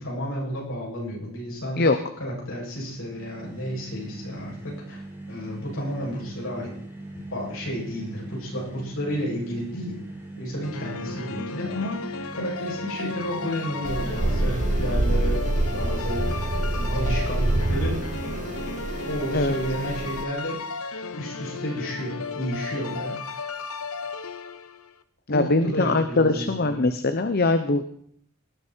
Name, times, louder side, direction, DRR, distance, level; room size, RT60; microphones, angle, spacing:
voice 1, 0.0-1.8 2.2-5.0 5.3-6.7 7.1-10.0 10.4-18.0 19.1-20.6 21.2-23.4 25.3-26.8, equal, 65° left, -3 dB, 7.5 m, -32 dB
sound 1, 2.9-15.5, right 1 dB, 10° right, 6.5 m, -41 dB
sound 2, 10.6-24.9, left 4 dB, 85° left, 1.1 m, -35 dB
sound 3, 13.8-20.2, right 2 dB, 35° right, 0.7 m, -26 dB
voice 2, 25.3-27.8, left 2 dB, 45° left, 9 dB, 0.8 m, -22 dB
19.0 x 12.5 x 4.5 m, 0.65 s
head